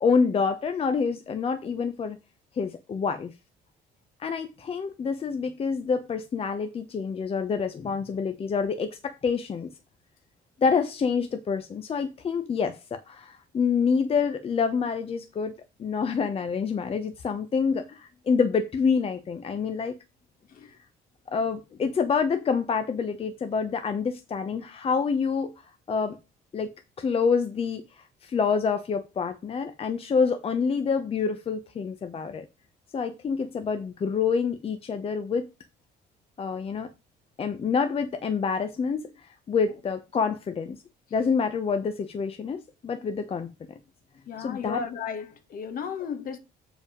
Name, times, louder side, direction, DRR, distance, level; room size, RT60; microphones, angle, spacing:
voice 1, 0.0-2.2 2.6-3.3 4.2-9.7 10.6-19.9 20.6-20.7 21.3-25.5 25.9-26.2 26.5-32.4 32.9-35.5 36.4-36.9 37.4-40.8 41.1-43.5 44.4-44.8, left 5 dB, 35° left, 0.9 m, -27 dB
voice 2, 44.3-46.4, left 6 dB, 55° left, 1.6 m, -34 dB
7.2 x 5.0 x 5.1 m
cardioid pair, 110°, 17 cm